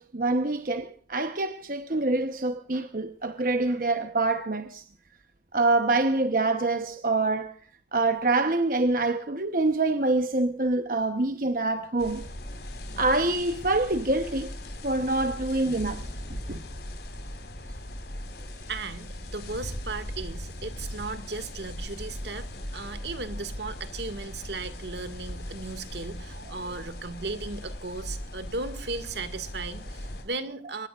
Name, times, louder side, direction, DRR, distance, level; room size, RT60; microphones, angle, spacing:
voice 1, 0.0-4.8 5.5-7.6 7.9-12.2 13.0-14.5 14.8-16.0 16.5-16.6, right 2 dB, 50° right, 1.0 m, -25 dB
sound 1, 12.0-30.2, left 1 dB, 70° left, 4.4 m, -39 dB
voice 2, 18.7-30.9, right 3 dB, 80° right, 2.0 m, -36 dB
25.0 x 21.0 x 2.5 m
head